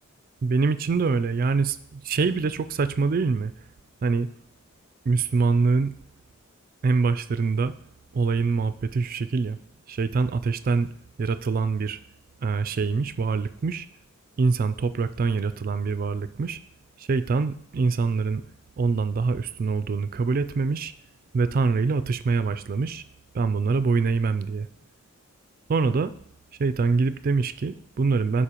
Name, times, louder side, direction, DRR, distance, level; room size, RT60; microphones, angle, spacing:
voice 1, 0.4-3.5 4.0-4.3 5.1-5.9 6.8-7.7 8.1-9.6 9.9-10.9 11.2-12.0 12.4-13.9 14.4-16.6 17.0-18.4 18.8-20.9 21.3-23.0 23.3-24.7 25.7-26.1 26.6-28.4, right 4 dB, 40° right, 13 dB, 0.3 m, -24 dB
11.5 x 4.4 x 2.9 m, 0.65 s
head